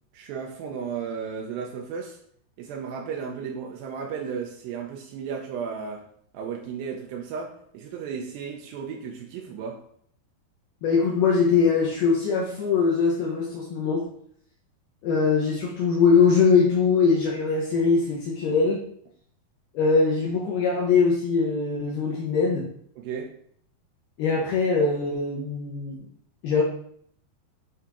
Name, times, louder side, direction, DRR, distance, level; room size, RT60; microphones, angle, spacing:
voice 1, 0.1-2.2 2.6-6.0 6.3-9.8 23.0-23.3, right 6 dB, 85° right, 0 dB, 2.0 m, -34 dB
voice 2, 10.8-14.0 15.0-18.8 19.7-22.6 24.2-25.9 26.4-26.6, left 5 dB, 75° left, -3 dB, 1.9 m, -22 dB
9.1 x 3.5 x 3.0 m, 0.65 s
omnidirectional pair, 5.0 m